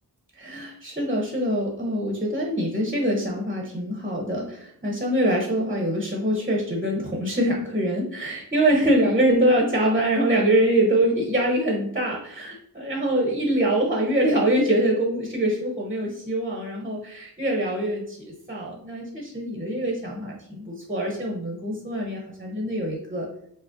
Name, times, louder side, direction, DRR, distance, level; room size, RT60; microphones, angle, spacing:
voice 1, 0.4-23.3, right 1 dB, 20° right, -1 dB, 0.8 m, -24 dB
6.0 x 2.0 x 2.5 m, 0.68 s
wide cardioid pair, 65°, 41 cm